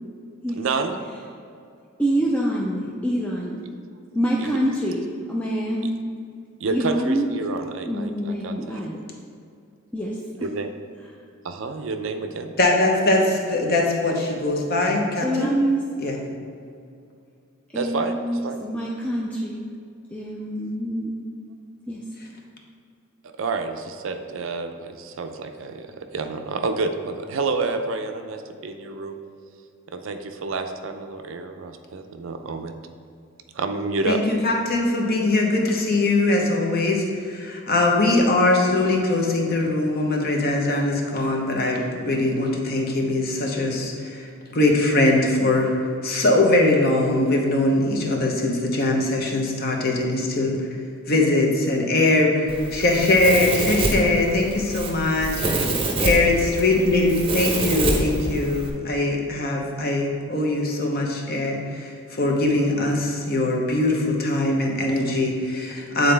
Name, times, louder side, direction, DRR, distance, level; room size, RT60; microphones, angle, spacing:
voice 1, 0.5-1.0 4.4-4.6 6.6-8.8 10.4-10.7 11.4-12.5 17.7-18.6 23.4-29.2 29.9-32.7 33.5-34.2, right 3 dB, 60° right, 6 dB, 0.4 m, -29 dB
voice 2, 2.0-3.6 4.1-6.0 6.7-7.3 7.8-9.0 9.9-10.5 15.2-15.8 17.7-19.6 20.1-21.2 21.9-22.0, right 1 dB, 5° left, -3 dB, 0.4 m, -26 dB
voice 3, 12.6-15.5 16.0-16.2 34.1-45.7 46.0-50.5 51.1-55.7 56.0-66.1, left 2 dB, 45° left, 0 dB, 0.8 m, -21 dB
Domestic sounds home sounds, 52.5-58.7, right 2 dB, 25° right, 0.7 m, -26 dB
8.5 x 3.9 x 3.3 m, 2.4 s
head